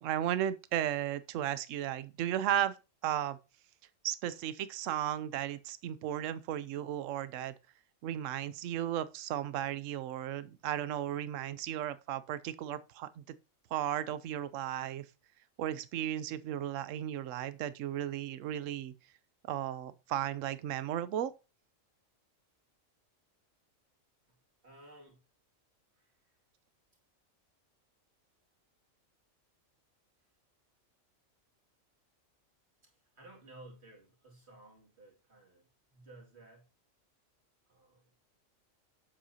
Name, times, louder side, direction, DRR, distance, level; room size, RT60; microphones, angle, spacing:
voice 1, 0.0-2.8 3.0-3.4 4.0-7.5 8.0-13.2 13.7-15.0 15.6-18.9 19.5-21.3, right 11 dB, 75° right, 1.0 m, -35 dB
voice 2, 24.6-25.2 25.9-26.3 32.8-36.7 37.7-38.1, right 2 dB, 55° right, 2.5 m, -56 dB
8.6 x 7.6 x 2.8 m
omnidirectional pair, 1.4 m